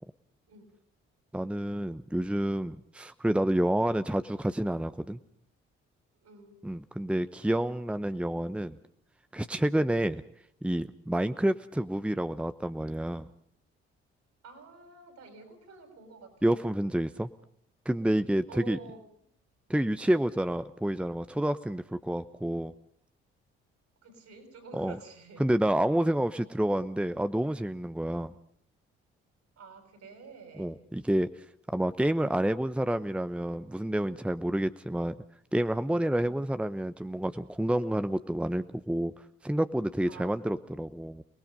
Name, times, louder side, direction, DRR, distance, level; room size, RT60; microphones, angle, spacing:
voice 1, 1.3-5.2 6.6-8.7 9.3-10.2 10.6-13.3 16.4-17.3 17.8-18.8 19.7-22.7 24.7-25.0 25.4-28.3 30.6-31.3 31.7-35.1 35.5-39.1 39.4-41.2, right 1 dB, 5° right, 11 dB, 0.9 m, -29 dB
voice 2, 6.2-6.6 14.4-16.6 18.5-19.0 24.0-25.4 29.6-30.8 36.2-36.5 40.0-40.5, right 4 dB, 65° right, 6 dB, 7.1 m, -49 dB
29.5 x 19.0 x 5.2 m, 0.63 s
hypercardioid pair, 50°, 29 cm